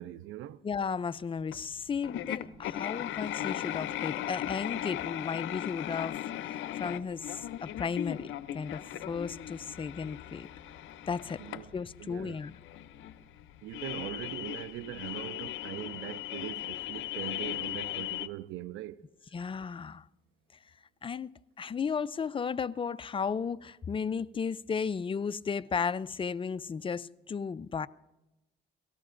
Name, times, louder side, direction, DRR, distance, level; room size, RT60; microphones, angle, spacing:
voice 1, 0.0-0.6 11.4-11.7 12.0-12.4 13.6-19.1, right 14 dB, 85° right, 0.5 m, -41 dB
voice 2, 0.6-10.5 11.1-11.4 11.7-12.5 19.3-20.1 21.0-27.9, left 6 dB, 25° left, 0.4 m, -34 dB
sound 1, 1.5-1.6 2.0-18.3, left 12 dB, 80° left, 0.6 m, -38 dB
sound 2, 2.1-7.1 8.4-8.5 8.9-16.3 17.3-17.4, right 1 dB, 50° right, 1.7 m, -62 dB
27.0 x 18.0 x 2.5 m
cardioid pair, 90°, 20 cm